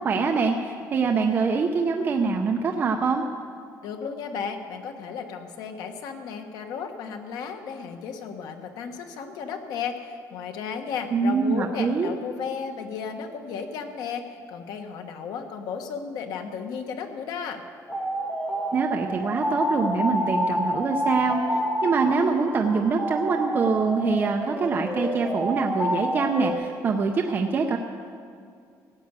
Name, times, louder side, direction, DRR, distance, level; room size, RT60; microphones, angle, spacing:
voice 1, 0.0-3.2 11.1-12.1 18.7-27.8, right 4 dB, 30° right, 3 dB, 0.6 m, -24 dB
voice 2, 3.8-17.6, left 6 dB, 75° left, 6 dB, 1.3 m, -34 dB
sound 1, 17.9-26.5, equal, 5° left, 1.6 m, -28 dB
15.5 x 9.3 x 8.2 m, 2.4 s
cardioid pair, 170°, 7 cm